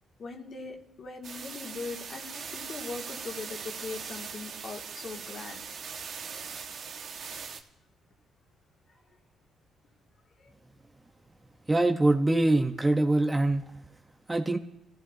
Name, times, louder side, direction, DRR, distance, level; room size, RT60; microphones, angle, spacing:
voice 1, 0.2-5.6, left 4 dB, 50° left, 0 dB, 2.6 m, -40 dB
sound 1, 1.2-7.6, right 6 dB, 65° right, 1.6 m, -40 dB
voice 2, 11.7-13.6 14.3-14.6, right 2 dB, 15° right, 5 dB, 1.1 m, -23 dB
27.5 x 15.5 x 2.9 m, 0.80 s
cardioid pair, 90°, 0 cm